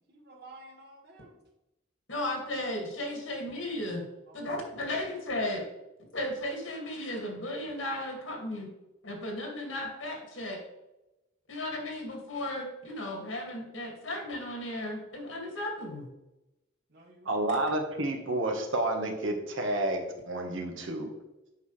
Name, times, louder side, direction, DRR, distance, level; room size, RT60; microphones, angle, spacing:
voice 1, 0.0-1.4 4.3-4.5 16.9-17.4, right 2 dB, 55° right, 1 dB, 1.5 m, -52 dB
voice 2, 2.1-4.1 4.3-5.6 6.1-8.7 9.0-10.6 11.5-16.1, left 1 dB, 90° left, 1 dB, 2.1 m, -35 dB
voice 3, 17.2-21.1, right 2 dB, 85° right, 2 dB, 1.3 m, -30 dB
8.2 x 5.7 x 3.2 m, 0.98 s
head